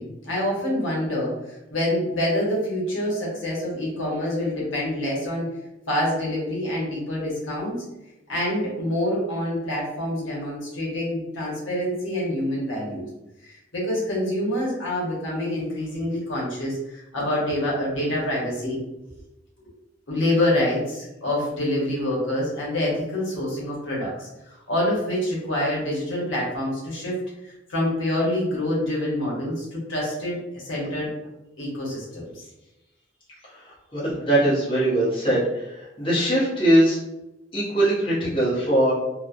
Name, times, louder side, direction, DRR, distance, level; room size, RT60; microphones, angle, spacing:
voice 1, 0.0-1.3 1.7-5.5 5.9-7.8 8.3-13.1 13.4-18.8 20.1-27.1 27.4-31.1 31.6-32.4, left 1 dB, 80° left, -5 dB, 1.0 m, -26 dB
voice 2, 33.4-37.0 37.5-38.9, right 1 dB, 30° left, -8 dB, 0.9 m, -21 dB
3.0 x 2.0 x 2.4 m, 0.94 s
head